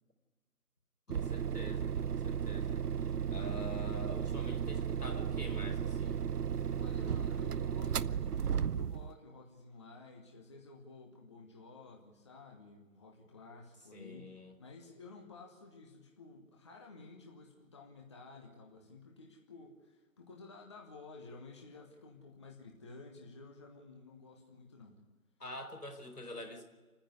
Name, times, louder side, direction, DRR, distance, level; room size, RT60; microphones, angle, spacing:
voice 1, 1.1-2.8 3.3-6.2 13.9-14.5 25.4-26.6, left 1 dB, 85° left, 4 dB, 4.6 m, -46 dB
sound 1, 1.1-9.1, right 7 dB, 85° right, 0.6 m, -34 dB
voice 2, 6.8-25.0, left 3 dB, 20° left, 1 dB, 1.2 m, -53 dB
29.0 x 10.0 x 9.7 m, 1.3 s
figure-of-eight pair, 150°, 45 cm